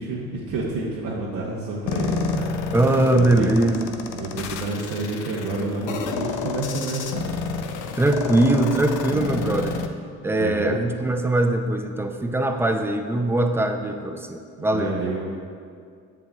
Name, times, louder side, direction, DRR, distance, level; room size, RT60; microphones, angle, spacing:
voice 1, 0.0-2.5 3.2-3.5 4.1-7.2 10.2-10.8 14.6-15.2, right 3 dB, 90° right, -4 dB, 0.8 m, -29 dB
sound 1, 1.9-9.9, left 5 dB, 85° left, 0.5 m, -29 dB
voice 2, 2.7-3.9 8.0-9.8 10.2-15.0, right 1 dB, 10° right, 5 dB, 0.4 m, -21 dB
7.6 x 7.3 x 2.3 m, 2.2 s
cardioid pair, 90°, 30 cm